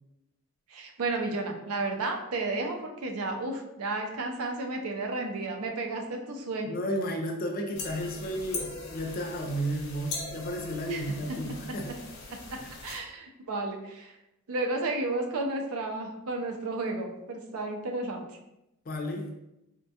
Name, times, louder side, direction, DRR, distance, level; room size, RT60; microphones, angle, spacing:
voice 1, 0.7-6.7 10.9-11.0 11.3-11.4 11.7-12.0 12.3-14.1 14.5-18.2, right 2 dB, 80° right, 3 dB, 0.5 m, -32 dB
voice 2, 6.7-11.9 12.6-12.7 18.9-19.3, equal, 40° left, 3 dB, 0.4 m, -33 dB
sound 1, 7.7-13.0, left 3 dB, 90° left, 0.7 m, -40 dB
3.5 x 2.2 x 2.7 m, 0.89 s
head